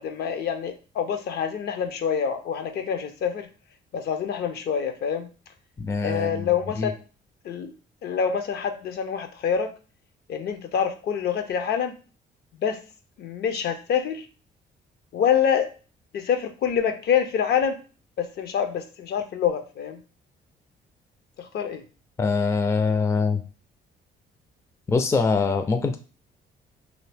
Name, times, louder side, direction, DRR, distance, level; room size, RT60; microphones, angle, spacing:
voice 1, 0.0-3.5 3.9-5.3 6.0-6.9 7.4-7.7 8.0-9.7 10.3-12.0 12.6-12.8 13.2-14.3 15.1-15.7 16.1-17.8 18.2-20.0 21.4-21.8, left 7 dB, 65° left, 8 dB, 0.6 m, -26 dB
voice 2, 5.8-6.9 22.2-23.4 24.9-26.0, left 4 dB, 15° left, 6 dB, 0.4 m, -24 dB
2.7 x 2.6 x 3.3 m, 0.35 s
cardioid pair, 110°, 18 cm